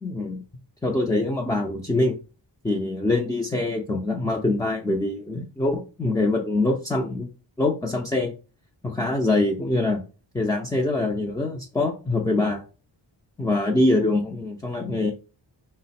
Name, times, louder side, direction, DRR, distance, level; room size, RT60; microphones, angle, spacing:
voice 1, 0.0-0.4 0.8-2.2 2.6-7.3 7.6-8.3 8.8-10.0 10.3-12.6 13.4-15.1, left 2 dB, 10° left, 2 dB, 0.4 m, -24 dB
4.7 x 2.1 x 4.1 m, 0.34 s
wide cardioid pair, 155°, 43 cm